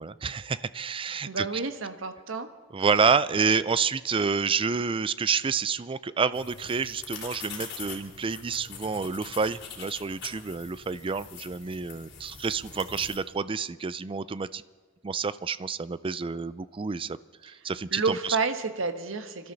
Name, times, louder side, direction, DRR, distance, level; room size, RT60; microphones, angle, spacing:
voice 1, 0.0-1.5 2.7-14.6 15.0-17.2 17.4-18.4, right 5 dB, 25° right, 17 dB, 0.4 m, -28 dB
voice 2, 1.3-2.5 17.5-17.6 17.9-19.5, right 4 dB, 90° right, 8 dB, 1.2 m, -30 dB
sound 1, 6.3-13.2, left 6 dB, 60° left, 3.2 m, -43 dB
26.0 x 13.0 x 4.0 m, 1.5 s
head